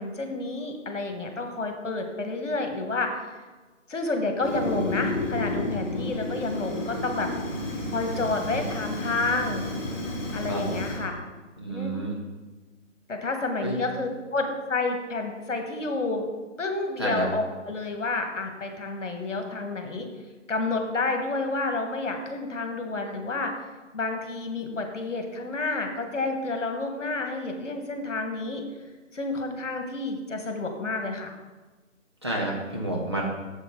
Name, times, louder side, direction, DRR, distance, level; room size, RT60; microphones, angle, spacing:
voice 1, 0.0-3.2 3.9-7.3 7.9-9.7 10.3-11.2 11.7-11.9 13.1-16.3 16.6-20.1 20.5-23.5 23.9-28.6 29.1-31.3, left 3 dB, 70° left, 5 dB, 1.6 m, -30 dB
Fire, 4.4-11.0, left 1 dB, 35° left, 2.6 m, -31 dB
voice 2, 8.2-8.6 10.5-10.7 11.6-12.2 13.6-13.8 17.0-17.3 32.2-33.3, right 1 dB, 20° right, -2 dB, 0.8 m, -30 dB
8.3 x 7.1 x 3.7 m, 1.2 s
figure-of-eight pair, 165°, 39 cm